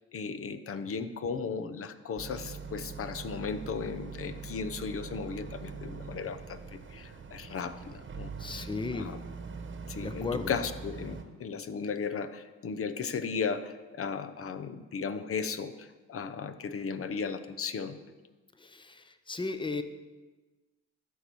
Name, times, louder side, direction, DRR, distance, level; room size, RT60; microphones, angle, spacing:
voice 1, 0.1-8.7 8.9-9.2 9.9-18.0, left 5 dB, 45° left, 11 dB, 0.8 m, -36 dB
Boat Water vehicle, 2.2-11.2, right 5 dB, 40° right, 1.2 m, -42 dB
voice 2, 8.4-9.1 9.9-10.5 18.6-19.8, left 4 dB, 15° left, 10 dB, 0.8 m, -35 dB
13.0 x 4.7 x 6.8 m, 1.2 s
cardioid pair, 90°, 30 cm